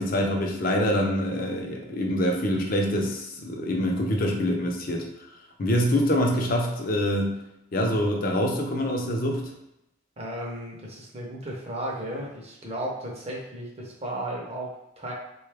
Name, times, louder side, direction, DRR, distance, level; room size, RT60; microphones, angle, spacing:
voice 1, 0.0-5.1 5.6-7.3 7.7-9.5, equal, 45° left, 1 dB, 0.5 m, -25 dB
voice 2, 10.2-15.1, right 1 dB, 30° right, -1 dB, 0.6 m, -34 dB
3.7 x 2.3 x 3.3 m, 0.84 s
head